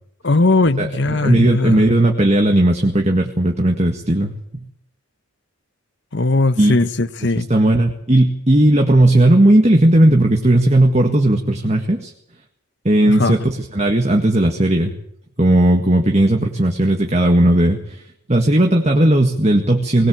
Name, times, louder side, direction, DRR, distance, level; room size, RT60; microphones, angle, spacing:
voice 1, 0.2-1.9 6.1-7.5 13.1-13.4, left 2 dB, 50° left, 1.1 m, -18 dB
voice 2, 0.8-4.7 6.6-6.8 7.4-12.1 12.9-14.9 15.4-18.0 18.3-20.1, right 1 dB, 30° right, 1.8 m, -15 dB
20.5 x 20.5 x 7.6 m
head